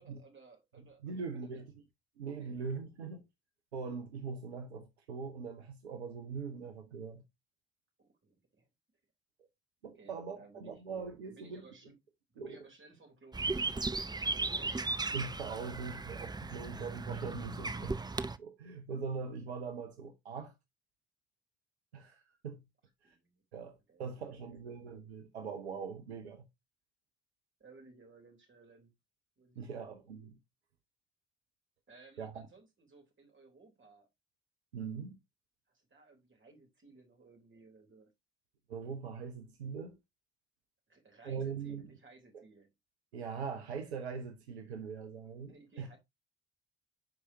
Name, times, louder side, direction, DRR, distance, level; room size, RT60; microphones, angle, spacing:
voice 1, 0.0-1.6 2.4-2.9 8.0-8.7 9.9-10.8 11.2-12.0 12.3-13.9 14.2-15.0 15.6-15.9 23.0-23.4 23.9-24.7 27.6-28.9 29.4-30.0 31.9-34.1 35.7-38.1 40.9-42.7 45.5-46.0, right 3 dB, 40° right, 3.4 m, -59 dB
voice 2, 1.0-1.7 2.2-3.2 3.7-7.2 9.8-11.6 12.4-12.6 15.1-18.0 18.4-20.5 21.9-22.6 23.0-23.2 23.5-26.5 29.6-30.3 32.2-32.5 34.7-35.2 38.7-40.0 41.2-41.9 42.3-42.4 43.1-45.9, right 5 dB, 85° right, 0.8 m, -41 dB
sound 1, 13.3-18.4, right 3 dB, 15° right, 0.6 m, -36 dB
11.0 x 4.8 x 2.7 m
figure-of-eight pair, 45°, 32 cm